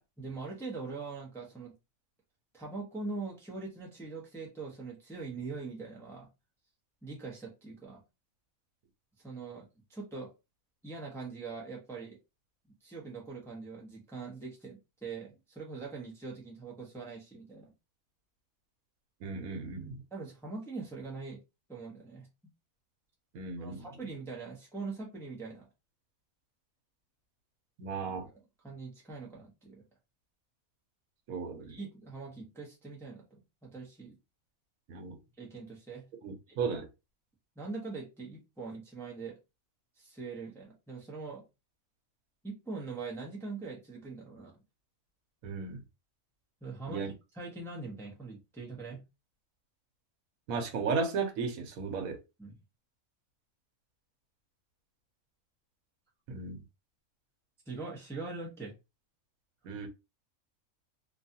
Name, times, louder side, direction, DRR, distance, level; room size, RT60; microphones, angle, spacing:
voice 1, 0.2-1.7 2.5-6.3 7.0-8.0 9.2-10.3 10.8-12.2 12.8-17.7 20.1-21.4 21.7-22.3 23.6-25.7 28.1-29.8 31.6-34.2 35.4-36.1 36.5-36.6 37.6-39.4 40.0-41.4 42.4-44.6 46.6-49.0 52.4-52.6 57.7-58.7, right 4 dB, 5° left, 0.5 m, -42 dB
voice 2, 19.2-20.0 23.3-23.9 27.8-28.3 31.3-31.8 34.9-35.2 36.2-36.9 45.4-45.8 46.9-47.1 50.5-52.2 56.3-56.6 59.6-59.9, right 5 dB, 80° right, 1.1 m, -35 dB
2.7 x 2.3 x 2.6 m
omnidirectional pair, 1.4 m